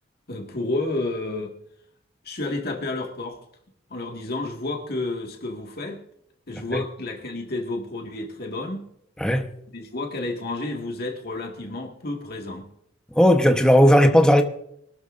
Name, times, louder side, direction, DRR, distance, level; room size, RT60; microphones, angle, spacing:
voice 1, 0.3-1.5 2.2-3.4 3.9-6.0 6.5-8.9 9.7-12.7, left 2 dB, 50° left, 1 dB, 1.9 m, -30 dB
voice 2, 9.2-9.5 13.1-14.4, equal, 5° left, 5 dB, 1.1 m, -16 dB
23.5 x 12.5 x 2.6 m, 0.74 s
head